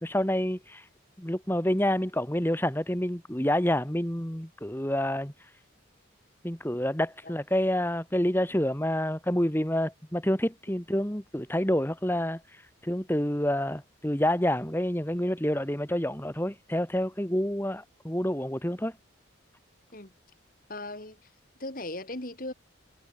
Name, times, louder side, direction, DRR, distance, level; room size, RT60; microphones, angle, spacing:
voice 1, 0.0-0.9 1.2-5.3 6.4-19.0, left 1 dB, 10° left, 1.8 m, -28 dB
voice 2, 20.7-21.3 21.6-22.5, left 2 dB, 45° left, 3.7 m, -38 dB
head